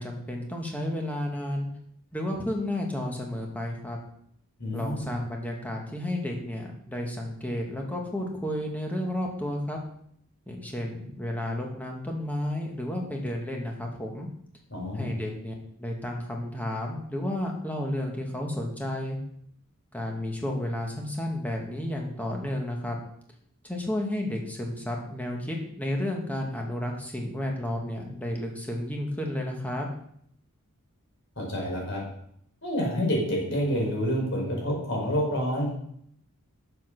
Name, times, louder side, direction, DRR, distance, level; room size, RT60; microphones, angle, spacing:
voice 1, 0.0-1.7 2.1-4.0 4.7-9.8 10.5-14.3 14.9-19.2 19.9-23.0 23.6-29.9, left 1 dB, 5° left, 0 dB, 2.0 m, -32 dB
voice 2, 4.6-5.1 14.7-15.1 31.4-32.0 32.6-35.7, equal, 55° left, -1 dB, 4.6 m, -28 dB
9.0 x 7.7 x 6.1 m, 0.68 s
head